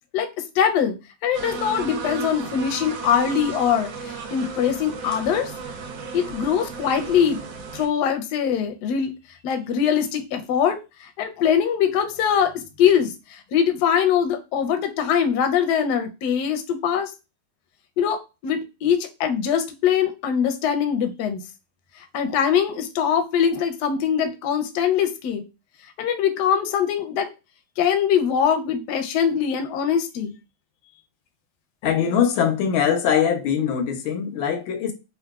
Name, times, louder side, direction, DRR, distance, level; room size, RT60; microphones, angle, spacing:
voice 1, 0.1-1.0 1.2-5.5 6.1-7.4 7.7-9.1 9.4-17.1 18.0-21.4 22.1-25.4 26.0-27.3 27.8-30.4, left 8 dB, 70° left, 1.0 m, -22 dB
sound 1, 1.3-7.9, right 5 dB, 80° right, 1.6 m, -34 dB
voice 2, 31.8-34.9, left 8 dB, 90° left, 1.4 m, -22 dB
3.8 x 2.5 x 2.3 m
omnidirectional pair, 2.1 m